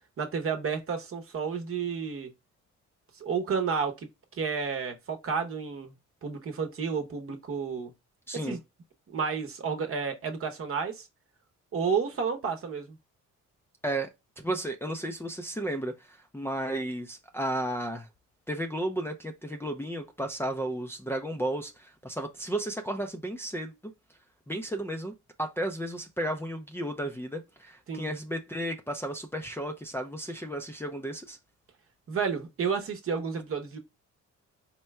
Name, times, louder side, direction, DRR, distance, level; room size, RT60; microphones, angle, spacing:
voice 1, 0.2-2.3 3.2-3.9 4.3-5.9 6.2-7.9 8.4-8.6 9.1-11.1 11.7-13.0 27.9-28.1 32.1-33.8, right 6 dB, 45° right, 1.0 m, -31 dB
voice 2, 8.3-8.6 13.8-14.1 14.4-18.1 18.5-23.7 24.5-25.1 25.4-31.4, right 1 dB, 10° left, 0.5 m, -33 dB
4.4 x 2.1 x 3.4 m
cardioid pair, 90°, 30 cm